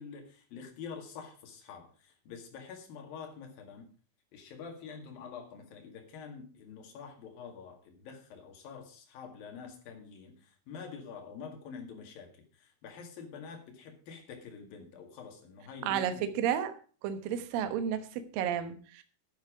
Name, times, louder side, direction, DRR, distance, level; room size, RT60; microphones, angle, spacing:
voice 1, 0.0-3.9 4.3-16.3, left 6 dB, 55° left, 3 dB, 3.3 m, -47 dB
voice 2, 15.9-16.7 17.0-19.0, right 9 dB, 80° right, 9 dB, 2.0 m, -32 dB
11.0 x 10.5 x 5.0 m, 0.39 s
omnidirectional pair, 5.9 m